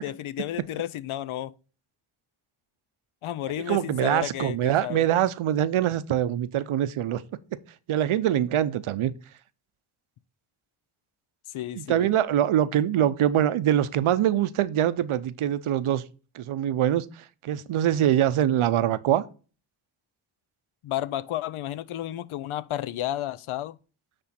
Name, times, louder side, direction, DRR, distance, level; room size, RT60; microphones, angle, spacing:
voice 1, 0.0-1.5 3.2-5.0 11.5-12.1 20.8-23.8, left 13 dB, 85° left, 0.6 m, -32 dB
voice 2, 3.7-7.2 7.9-9.1 11.7-16.0 16.3-19.2, right 11 dB, 85° right, 0.7 m, -24 dB
9.8 x 3.4 x 4.2 m
cardioid pair, 65°, 48 cm